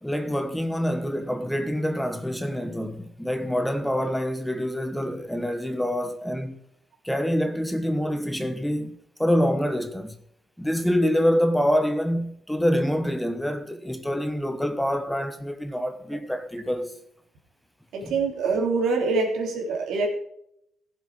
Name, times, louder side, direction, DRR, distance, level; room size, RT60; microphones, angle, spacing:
voice 1, 0.0-6.6 7.0-10.2 10.6-17.0 18.0-18.2, equal, 5° left, 1.2 m, -26 dB
voice 2, 17.9-20.1, right 4 dB, 75° right, 3.3 m, -25 dB
15.5 x 7.6 x 4.8 m
cardioid pair, 90°, 0 cm